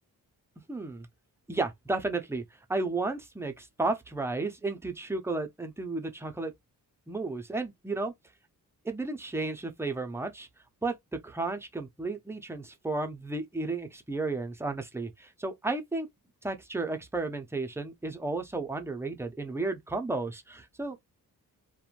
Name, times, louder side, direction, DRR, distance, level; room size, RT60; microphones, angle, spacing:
voice 1, 0.7-1.1 1.5-2.4 2.7-6.5 7.1-8.1 8.8-10.5 10.8-16.1 16.4-21.0, right 3 dB, 5° right, 0.4 m, -33 dB
3.0 x 2.1 x 2.4 m
wide cardioid pair, 110°, 37 cm